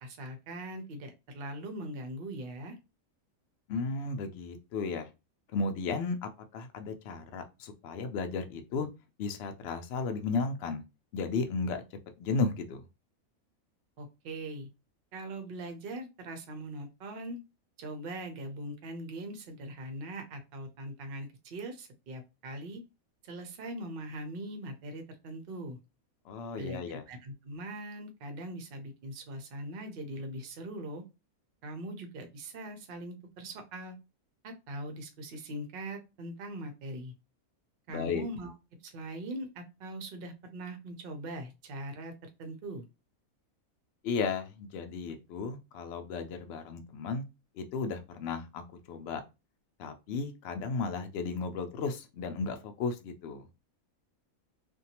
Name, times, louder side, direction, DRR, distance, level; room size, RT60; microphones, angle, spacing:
voice 1, 0.0-2.8 14.0-14.7 15.1-17.4 17.8-22.8 23.2-25.8 26.6-31.0 31.6-34.0 34.4-37.1 37.9-38.5 38.8-42.1 42.4-42.8, right 1 dB, 60° right, 6 dB, 0.6 m, -41 dB
voice 2, 3.7-5.1 5.5-8.9 9.2-10.8 11.1-11.8 12.2-12.8 26.3-27.0 37.9-38.2 44.0-47.2 47.6-49.2 49.8-53.5, left 4 dB, 65° left, 7 dB, 0.6 m, -34 dB
2.6 x 2.2 x 2.8 m, 0.26 s
omnidirectional pair, 1.5 m